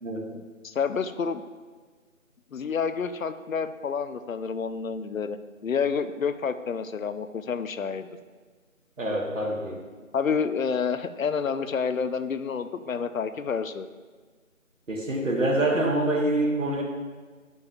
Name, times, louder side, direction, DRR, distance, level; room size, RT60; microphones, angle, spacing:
voice 1, 0.3-1.4 2.5-5.4 5.6-8.2 10.1-13.9, left 6 dB, 70° left, 11 dB, 0.5 m, -29 dB
voice 2, 9.0-9.8 14.9-16.8, right 1 dB, 65° right, 0 dB, 1.3 m, -25 dB
9.5 x 5.3 x 2.4 m, 1.4 s
figure-of-eight pair, 175°, 42 cm